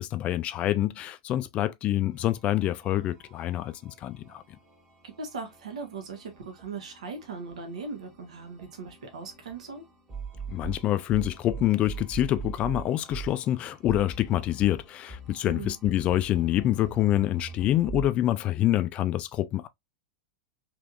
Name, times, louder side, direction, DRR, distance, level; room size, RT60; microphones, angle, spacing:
voice 1, 0.0-4.4 10.5-19.7, left 13 dB, 30° left, 0.4 m, -26 dB
sound 1, 2.1-18.1, right 5 dB, 25° right, 1.4 m, -43 dB
voice 2, 5.0-9.8 15.4-15.8, right 4 dB, 65° right, 0.9 m, -39 dB
3.4 x 3.0 x 2.4 m
figure-of-eight pair, 95°, 4 cm